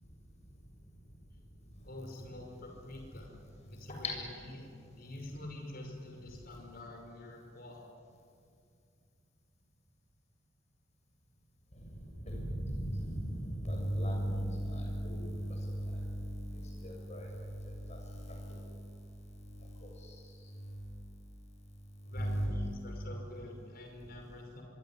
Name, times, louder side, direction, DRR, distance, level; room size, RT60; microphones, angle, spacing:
voice 1, 1.8-3.4 3.6-4.1 4.5-7.8 22.1-24.6, left 1 dB, 50° left, 2 dB, 5.6 m, -47 dB
voice 2, 12.3-17.3 17.7-18.6 19.8-19.9 22.1-22.5, equal, 35° left, 1 dB, 7.6 m, -36 dB
25.0 x 24.0 x 9.8 m, 2.4 s
head